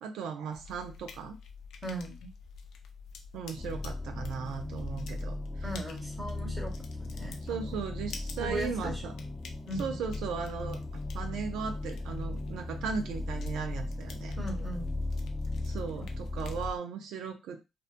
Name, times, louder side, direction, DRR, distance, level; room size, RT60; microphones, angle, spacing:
voice 1, 0.0-1.4 3.3-5.7 7.4-9.1 9.8-14.4 15.6-17.6, right 6 dB, 85° right, 5 dB, 0.4 m, -37 dB
sound 1, 0.5-16.8, left 5 dB, 75° left, 0.5 m, -49 dB
voice 2, 1.8-2.3 5.6-6.7 7.0-7.8 8.4-9.0 9.7-10.0 14.4-15.0 15.9-16.0, right 1 dB, 10° right, 1 dB, 1.1 m, -38 dB
sound 2, 3.6-16.7, left 2 dB, 20° left, 0.6 m, -36 dB
2.6 x 2.2 x 2.5 m, 0.25 s
cardioid pair, 75°, 0 cm